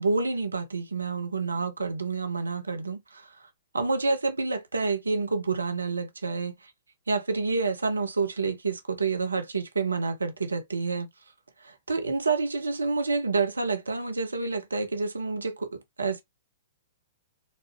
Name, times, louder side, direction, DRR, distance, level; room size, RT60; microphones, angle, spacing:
voice 1, 0.0-3.3 3.7-6.5 7.1-11.1 11.6-16.2, right 4 dB, 75° right, 0.7 m, -28 dB
4.0 x 2.3 x 2.7 m
figure-of-eight pair, 110°, 0 cm